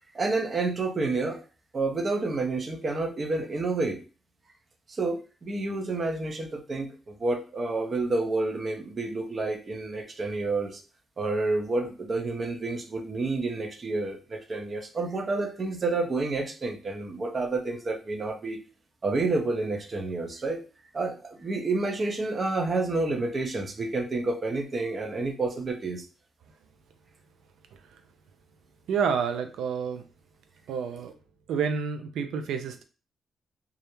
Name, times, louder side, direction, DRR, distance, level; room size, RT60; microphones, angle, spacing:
voice 1, 0.1-1.4 1.7-4.0 4.9-10.8 11.2-18.6 19.0-20.6 20.9-26.1, right 3 dB, 40° right, 4 dB, 0.6 m, -29 dB
voice 2, 28.9-30.0 30.7-31.2 31.5-32.8, right 6 dB, 80° right, 7 dB, 0.4 m, -29 dB
2.4 x 2.0 x 3.0 m, 0.34 s
supercardioid pair, 65°, 0 cm